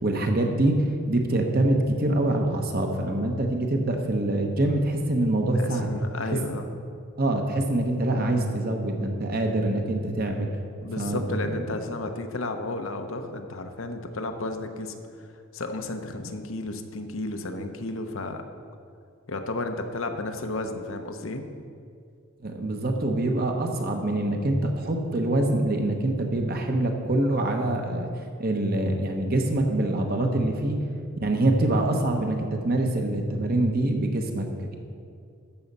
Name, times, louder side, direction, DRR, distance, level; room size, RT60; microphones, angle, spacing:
voice 1, 0.0-5.9 6.3-6.4 7.2-10.5 11.0-11.6 22.4-28.1 28.4-30.8 31.2-34.5, right 1 dB, 40° right, 3 dB, 1.1 m, -25 dB
voice 2, 5.5-6.7 10.8-18.4 19.3-21.5, left 2 dB, 60° left, 6 dB, 0.8 m, -33 dB
13.0 x 7.1 x 5.5 m, 2.3 s
head